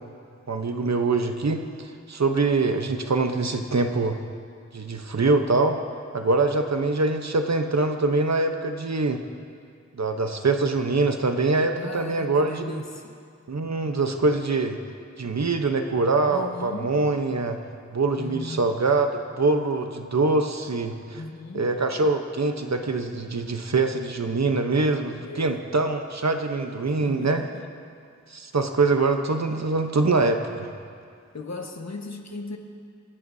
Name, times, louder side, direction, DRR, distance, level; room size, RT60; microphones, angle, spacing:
voice 1, 0.5-1.6 2.1-4.2 4.7-5.8 6.1-9.2 9.9-12.8 13.5-14.8 15.2-17.6 17.9-19.1 19.3-21.2 21.5-27.4 28.3-30.7, right 3 dB, 65° right, 5 dB, 1.0 m, -24 dB
voice 2, 11.7-13.2 16.3-17.0 18.2-18.8 21.1-21.7 25.2-25.6 27.0-27.7 31.3-32.6, left 3 dB, 65° left, 2 dB, 1.5 m, -37 dB
28.0 x 11.0 x 2.8 m, 2.3 s
wide cardioid pair, 45°, 29 cm